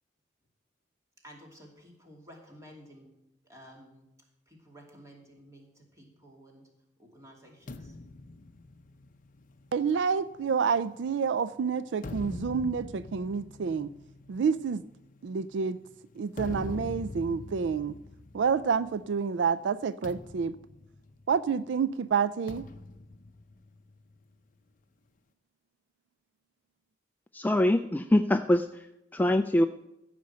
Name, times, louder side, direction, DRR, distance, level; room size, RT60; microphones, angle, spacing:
voice 1, 1.2-3.1 3.4-4.1 4.5-6.7 7.0-8.0, equal, 15° right, 0 dB, 2.6 m, -53 dB
sound 1, 7.7-11.3 11.8-19.2 19.5-19.7 20.0-21.6 22.5-24.2, left 2 dB, 45° left, 0.6 m, -44 dB
voice 2, 9.7-13.9 14.3-14.8 15.2-15.8 16.2-18.0 18.3-20.6 21.3-22.7, right 6 dB, 70° right, 16 dB, 0.4 m, -28 dB
voice 3, 27.3-28.7 29.1-29.6, left 1 dB, 10° left, 8 dB, 0.3 m, -23 dB
15.0 x 5.2 x 7.8 m, 0.90 s
head